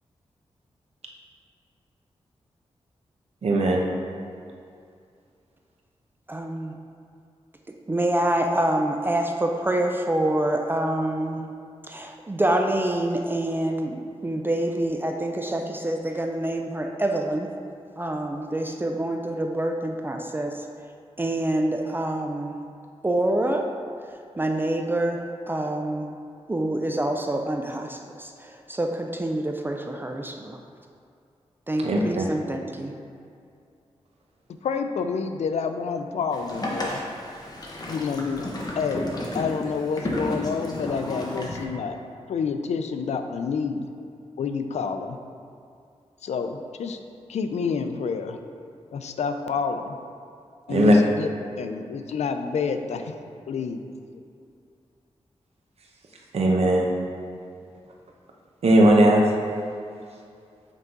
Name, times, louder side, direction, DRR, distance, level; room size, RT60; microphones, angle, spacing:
voice 1, 3.4-3.8 31.8-32.3 50.7-50.9 56.3-56.9 58.6-59.2, right 1 dB, 65° right, 0 dB, 0.9 m, -18 dB
voice 2, 6.3-6.7 7.9-11.4 11.8-17.5 18.0-20.7 21.2-22.6 23.0-23.7 24.4-26.1 26.5-30.6 31.7-32.9, right 1 dB, 20° right, 3 dB, 0.4 m, -26 dB
voice 3, 34.6-37.0 37.9-38.5 38.8-42.0 42.3-43.9 44.4-45.2 46.2-47.0 47.3-48.4 48.9-50.0 50.7-51.3 51.6-53.2 53.5-53.8, left 5 dB, 80° left, 7 dB, 0.4 m, -28 dB
Boat Water vehicle, 36.3-41.6, left 1 dB, 35° left, 1.0 m, -32 dB
8.2 x 3.6 x 3.9 m, 2.4 s
wide cardioid pair, 105°, 11 cm